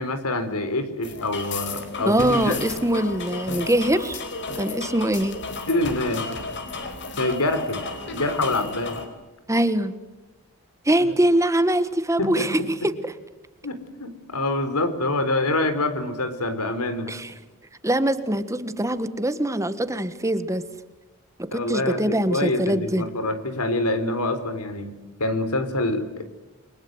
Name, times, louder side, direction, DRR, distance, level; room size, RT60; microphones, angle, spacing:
voice 1, 0.0-2.6 5.7-6.3 7.2-7.8 8.1-9.0 12.2-12.7 13.6-17.1 21.5-26.3, left 2 dB, 90° left, 10 dB, 4.2 m, -26 dB
sound 1, 1.0-9.1, left 3 dB, 55° left, 4.5 m, -33 dB
voice 2, 2.0-4.2 4.5-5.4 9.5-9.9 10.8-13.1 17.1-17.3 17.8-20.6 21.5-23.0, right 1 dB, 15° right, 12 dB, 1.5 m, -23 dB
30.0 x 23.5 x 8.0 m, 1.1 s
head